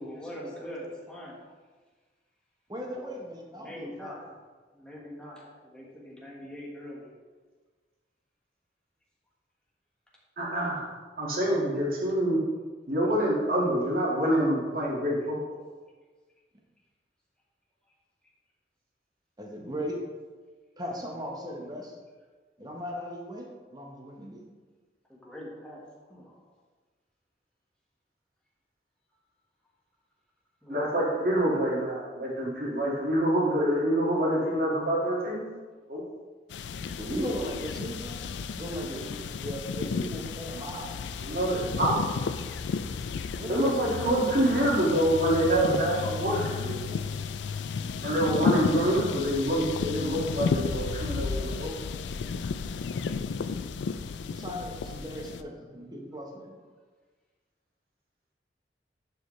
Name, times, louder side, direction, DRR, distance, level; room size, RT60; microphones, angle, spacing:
voice 1, 0.0-1.4 2.8-3.2 3.5-4.3 4.7-7.2 25.1-25.8 26.1-26.4 30.6-31.0, equal, 5° left, -5 dB, 1.5 m, -43 dB
voice 2, 2.7-4.1 19.4-20.0 20.8-21.9 22.6-24.5 37.0-38.3 38.5-41.0 41.6-42.0 43.4-44.1 54.3-56.6, equal, 25° right, 0 dB, 1.0 m, -37 dB
voice 3, 10.4-10.8 11.2-12.4 12.9-15.4 30.7-35.4 35.9-36.0 41.2-42.0 43.5-46.8 48.0-51.7, right 1 dB, 55° right, -4 dB, 2.0 m, -26 dB
sound 1, 36.5-55.4, left 5 dB, 80° left, 0.4 m, -33 dB
10.5 x 4.8 x 3.2 m, 1.4 s
head